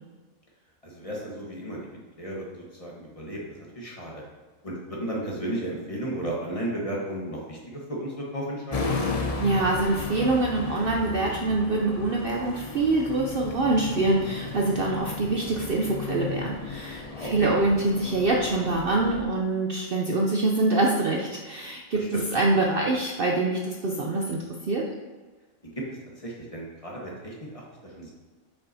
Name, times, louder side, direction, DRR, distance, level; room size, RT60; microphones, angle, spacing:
voice 1, 0.8-1.8 2.2-4.2 4.6-8.9 17.1-17.5 21.9-22.2 25.6-25.8 26.2-28.1, right 1 dB, 25° left, -3 dB, 1.2 m, -34 dB
sound 1, 8.7-19.2, left 4 dB, 45° left, 0.5 m, -35 dB
voice 2, 9.4-24.9, right 2 dB, 55° right, 0 dB, 0.7 m, -25 dB
7.7 x 5.7 x 2.7 m, 1.3 s
omnidirectional pair, 1.4 m